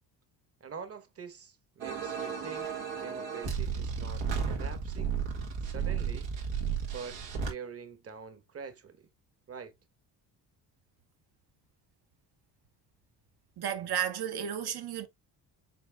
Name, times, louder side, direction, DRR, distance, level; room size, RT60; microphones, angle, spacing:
voice 1, 0.6-5.2 5.7-6.3 6.9-9.1 9.5-9.8, right 6 dB, 30° right, 1.2 m, -45 dB
sound 1, 1.8-7.5, right 6 dB, 80° right, 2.0 m, -33 dB
voice 2, 13.6-15.1, right 9 dB, 55° right, 1.2 m, -33 dB
5.9 x 3.9 x 2.3 m
supercardioid pair, 65°, 46 cm